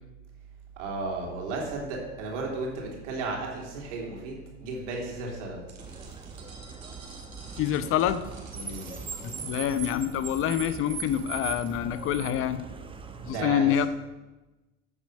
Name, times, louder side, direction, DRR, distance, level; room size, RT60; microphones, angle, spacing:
voice 1, 0.8-5.6 8.5-8.9 13.2-13.7, right 3 dB, 65° right, -1 dB, 3.4 m, -34 dB
sound 1, 5.7-11.7, right 3 dB, 85° right, 2.4 m, -51 dB
Car, 5.8-13.3, right 5 dB, 15° right, 1.0 m, -40 dB
voice 2, 7.6-8.2 9.2-12.6 13.2-13.9, left 10 dB, 35° left, 13 dB, 0.7 m, -26 dB
13.5 x 7.3 x 5.3 m, 1.1 s
figure-of-eight pair, 75°, 39 cm